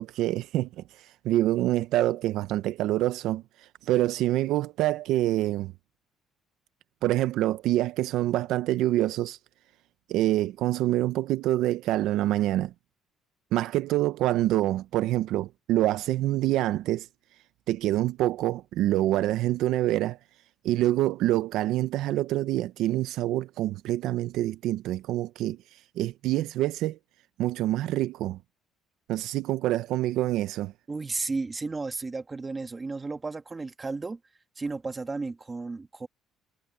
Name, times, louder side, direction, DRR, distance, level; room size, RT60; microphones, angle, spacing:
voice 1, 0.0-5.7 7.0-9.4 10.1-12.7 13.5-17.1 17.7-20.2 20.6-25.6 26.0-27.0 27.4-28.4 29.1-30.7, right 15 dB, 65° right, 0.5 m, -26 dB
voice 2, 30.9-34.2 34.6-36.1, right 3 dB, 15° right, 1.5 m, -33 dB
cardioid pair, 160°, 0 cm